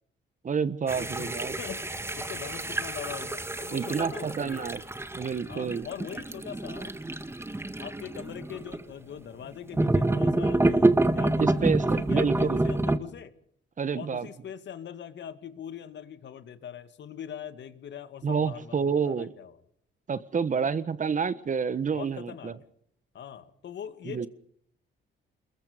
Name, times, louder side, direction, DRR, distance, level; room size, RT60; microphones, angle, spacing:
voice 1, 0.4-1.6 3.7-4.8 5.1-5.9 11.4-12.6 13.8-14.3 18.2-19.3 20.1-22.5 24.1-24.3, right 6 dB, 40° right, 1.5 m, -29 dB
sound 1, 0.9-8.8 9.7-13.0, right 2 dB, 10° right, 1.7 m, -27 dB
voice 2, 1.0-4.7 5.5-6.9 7.7-13.3 13.9-19.6 20.6-20.7 21.9-22.7 23.1-24.3, left 9 dB, 65° left, 2.2 m, -42 dB
27.0 x 22.0 x 5.3 m
cardioid pair, 90°, 20 cm